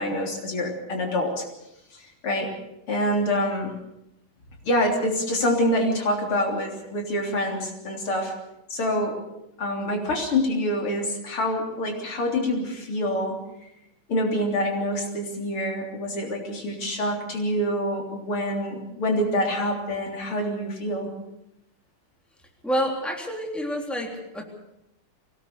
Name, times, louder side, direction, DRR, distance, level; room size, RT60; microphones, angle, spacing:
voice 1, 0.0-1.4 1.9-2.5 2.9-3.7 4.6-8.3 8.7-9.2 9.6-13.4 14.1-21.1, left 1 dB, 80° left, 1 dB, 4.4 m, -26 dB
voice 2, 22.6-24.4, equal, ahead, 1 dB, 3.3 m, -28 dB
23.0 x 18.0 x 6.9 m, 0.88 s
omnidirectional pair, 2.4 m